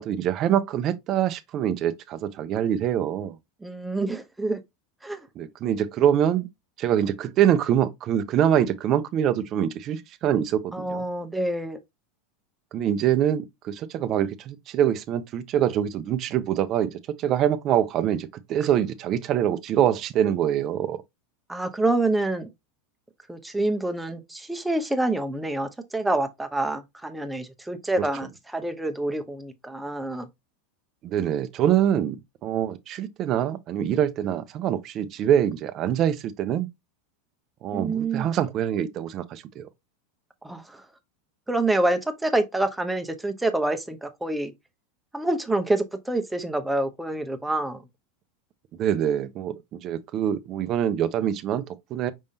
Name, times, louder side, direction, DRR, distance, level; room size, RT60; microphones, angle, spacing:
voice 1, 0.0-3.4 5.4-6.5 6.8-11.0 12.7-21.0 28.0-28.1 31.0-36.7 37.6-39.7 48.7-52.1, right 10 dB, 45° right, 0.5 m, -24 dB
voice 2, 3.6-4.6 5.0-5.3 10.7-11.8 21.5-22.5 23.3-30.3 37.7-38.3 40.4-40.8 41.5-44.5 45.1-47.9, right 2 dB, 5° right, 0.8 m, -27 dB
5.3 x 3.5 x 2.7 m
hypercardioid pair, 100°, 0 cm